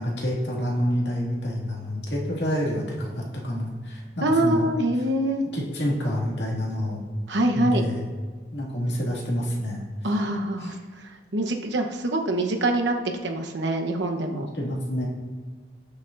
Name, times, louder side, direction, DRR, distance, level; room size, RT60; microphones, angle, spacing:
voice 1, 0.0-4.7 5.5-7.1 7.5-8.1 8.5-9.8 10.6-10.7 14.3-15.1, equal, 75° left, -3 dB, 2.2 m, -28 dB
voice 2, 4.2-5.4 7.3-7.9 10.0-11.0 11.3-12.9 13.2-14.5, right 1 dB, 80° right, 3 dB, 1.0 m, -24 dB
19.0 x 6.4 x 2.6 m, 1.5 s
head